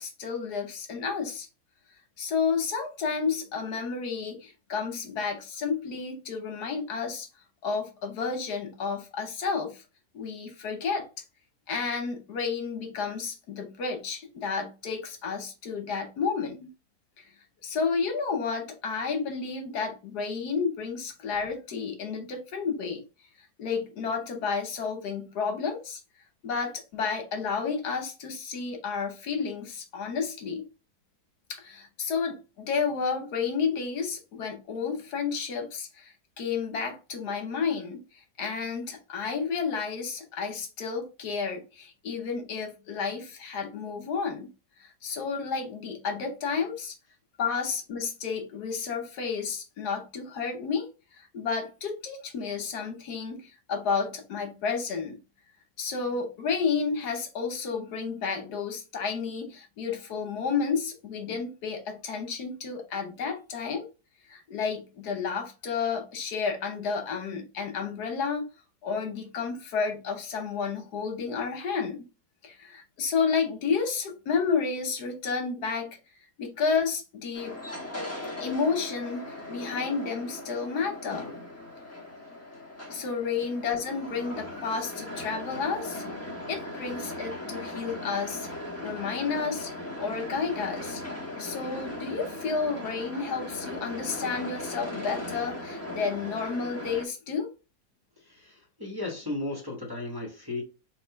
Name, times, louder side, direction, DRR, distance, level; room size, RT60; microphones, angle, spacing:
voice 1, 0.0-1.5 2.2-7.3 7.6-9.8 10.1-11.0 11.7-16.7 17.2-17.3 17.6-23.0 23.6-26.0 26.4-30.7 31.5-38.0 38.4-44.5 44.8-46.9 47.4-50.9 51.1-55.2 55.8-63.9 64.3-68.5 68.8-72.1 72.4-76.0 76.4-77.6 78.4-81.3 82.9-86.0 86.5-88.5 88.8-89.7 90.0-91.0 91.4-97.5, left 5 dB, 80° left, 1.6 m, -31 dB
sound 1, 77.3-97.0, left 1 dB, 10° left, 0.9 m, -38 dB
voice 2, 98.2-100.6, left 2 dB, 15° right, 1.1 m, -35 dB
4.2 x 2.5 x 4.6 m
omnidirectional pair, 1.7 m